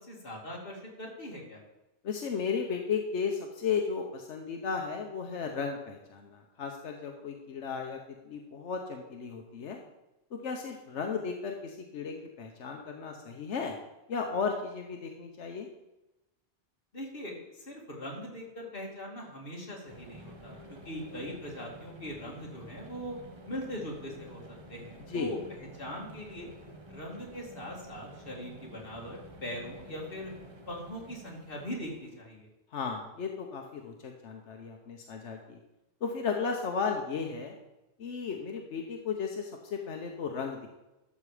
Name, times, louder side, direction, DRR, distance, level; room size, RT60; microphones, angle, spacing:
voice 1, 0.0-1.6 16.9-20.6 20.8-23.1 23.5-25.4 25.8-26.5 26.9-30.3 30.7-32.5, equal, 55° left, -2 dB, 2.6 m, -41 dB
voice 2, 2.0-8.0 8.3-9.8 10.3-13.7 14.1-15.7 25.1-25.3 32.7-35.6 36.0-37.5 38.0-40.7, left 5 dB, 85° left, 2 dB, 1.3 m, -34 dB
sound 1, 19.9-32.2, right 1 dB, 25° right, 1.0 m, -50 dB
12.5 x 6.8 x 4.9 m, 0.98 s
omnidirectional pair, 1.2 m